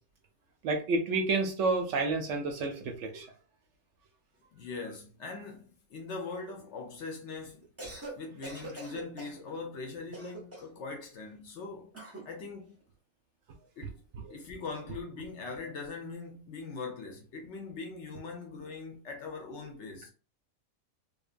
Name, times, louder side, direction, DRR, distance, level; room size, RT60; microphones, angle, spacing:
voice 1, 0.6-3.3 14.2-14.4, right 3 dB, 65° right, 0.8 m, -30 dB
voice 2, 4.5-7.7 8.1-11.9 12.2-12.8 13.8-14.0 14.3-20.1, left 4 dB, 60° left, 0.9 m, -41 dB
Cough, 7.6-8.2 8.4-9.4 10.1-10.8 11.9-12.3, right 2 dB, 15° right, 0.5 m, -43 dB
2.7 x 2.2 x 2.4 m
omnidirectional pair, 1.5 m